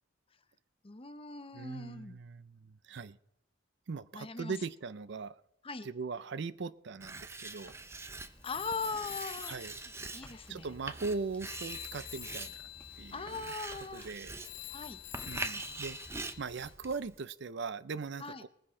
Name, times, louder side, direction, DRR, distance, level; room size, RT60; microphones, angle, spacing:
voice 1, 0.8-2.2 4.1-4.5 5.6-5.9 8.4-9.6 10.1-10.7 13.1-14.1 14.7-15.0 18.2-18.4, left 4 dB, 30° left, 11 dB, 0.8 m, -40 dB
voice 2, 1.5-3.2 3.9-5.4 5.8-7.7 9.4-9.8 10.5-12.7 13.0-13.5 13.9-14.4 15.3-16.0 16.4-18.5, right 4 dB, 65° right, 17 dB, 0.5 m, -40 dB
Writing, 7.0-17.2, right 3 dB, 15° right, 0.7 m, -44 dB
sound 1, 7.6-16.8, left 1 dB, 5° left, 2.0 m, -60 dB
Telephone, 8.4-11.2 11.5-16.7, left 16 dB, 75° left, 0.7 m, -48 dB
20.5 x 10.0 x 3.8 m, 0.76 s
head